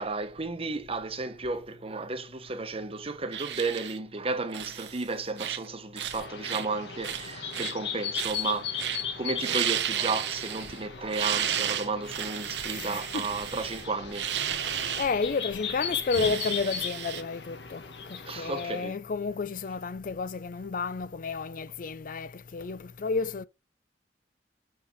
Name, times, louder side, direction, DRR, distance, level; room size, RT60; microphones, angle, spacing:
voice 1, 0.0-14.5 18.3-19.0, right 3 dB, 35° right, 1.1 m, -33 dB
sound 1, 3.3-4.0 4.5-5.0 5.4-5.7 6.0-6.6 7.0-7.7 8.1-8.5 8.8-9.0 9.3-10.8 11.1-15.1 16.1-17.2, right 9 dB, 85° right, 1.0 m, -32 dB
sound 2, 6.1-18.8, left 7 dB, 75° left, 1.4 m, -38 dB
voice 2, 12.7-13.3 15.0-17.8 18.1-23.4, left 4 dB, 50° left, 0.5 m, -31 dB
7.7 x 4.8 x 4.6 m
head